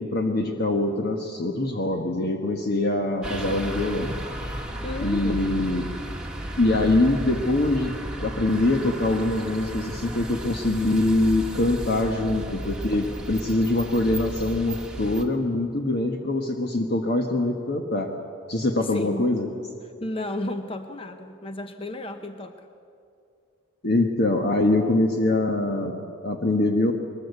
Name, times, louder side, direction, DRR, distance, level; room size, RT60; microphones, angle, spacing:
voice 1, 0.0-4.1 5.0-5.9 6.6-7.9 8.2-18.1 18.5-19.5 23.8-26.9, left 2 dB, 50° left, 3 dB, 1.3 m, -24 dB
sound 1, 3.2-15.2, right 1 dB, 5° right, 1.6 m, -34 dB
voice 2, 4.8-5.5 18.8-19.3 20.0-22.7, left 1 dB, 25° left, 7 dB, 0.8 m, -33 dB
22.5 x 20.5 x 8.2 m, 2.5 s
head